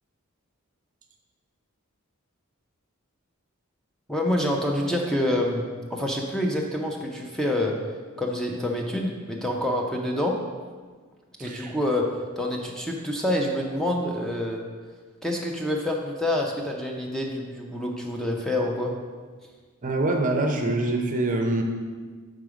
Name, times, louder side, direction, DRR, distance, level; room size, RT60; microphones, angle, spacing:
voice 1, 4.1-7.8 8.2-10.4 11.4-12.1 12.4-14.6 15.2-18.9, left 1 dB, 5° left, 0 dB, 0.5 m, -27 dB
voice 2, 11.4-11.7 19.8-21.6, right 2 dB, 40° right, 3 dB, 0.6 m, -25 dB
6.0 x 3.8 x 4.9 m, 1.5 s
head